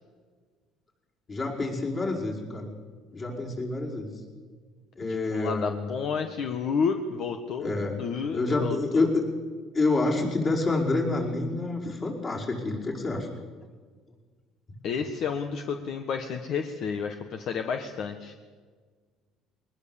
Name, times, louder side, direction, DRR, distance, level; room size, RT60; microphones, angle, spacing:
voice 1, 1.3-2.7 3.1-4.2 5.0-5.9 7.6-8.1 8.3-9.2 9.7-13.3, left 2 dB, 30° left, -1 dB, 5.3 m, -28 dB
voice 2, 5.3-7.7 8.0-9.1 14.8-18.3, left 6 dB, 55° left, 6 dB, 1.5 m, -30 dB
22.0 x 20.0 x 7.3 m, 1.5 s
cardioid pair, 120°, 0 cm